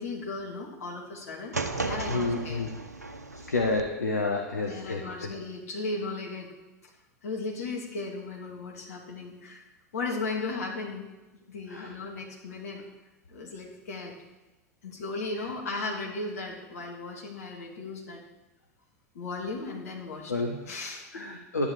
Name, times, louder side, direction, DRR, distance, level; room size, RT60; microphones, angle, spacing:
voice 1, 0.0-2.6 4.6-6.5 6.8-6.9 7.2-11.0 11.4-12.8 13.3-14.1 14.8-18.2 19.1-20.3 20.7-21.2, left 3 dB, 65° left, -2 dB, 3.2 m, -36 dB
sound 1, 1.5-3.8, right 3 dB, 80° right, 0.9 m, -34 dB
voice 2, 2.1-2.7 3.5-5.3 11.7-11.9 20.3-20.6 21.1-21.7, left 3 dB, 80° left, 3 dB, 1.1 m, -29 dB
12.0 x 11.0 x 5.0 m, 1.1 s
figure-of-eight pair, 85°, 9 cm